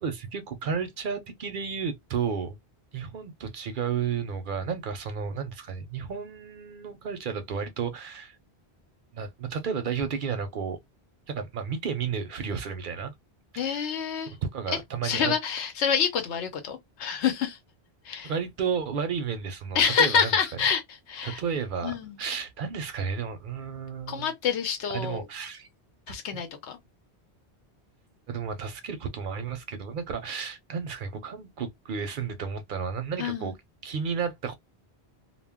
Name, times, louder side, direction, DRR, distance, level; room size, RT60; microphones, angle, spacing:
voice 1, 0.0-2.6 2.9-8.4 9.1-10.8 11.3-13.1 13.5-13.9 14.5-15.3 18.2-20.3 21.2-24.3 24.9-25.7 26.3-26.4 28.3-33.5 33.8-34.5, right 6 dB, 60° right, 0.6 m, -32 dB
voice 2, 13.6-14.3 14.7-17.6 18.0-18.3 19.7-21.4 21.8-22.2 24.1-25.3 26.1-26.8 33.2-33.5, left 7 dB, 90° left, 1.0 m, -27 dB
2.2 x 2.1 x 3.4 m
omnidirectional pair, 1.1 m